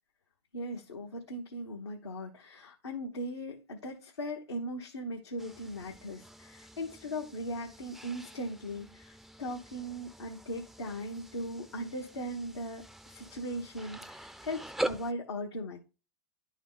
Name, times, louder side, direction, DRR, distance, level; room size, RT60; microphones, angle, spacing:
voice 1, 0.5-15.8, equal, 90° left, 1.1 m, -39 dB
sound 1, 5.4-15.1, right 1 dB, ahead, 0.3 m, -43 dB
10.5 x 3.9 x 3.8 m
hypercardioid pair, 105°, 14 cm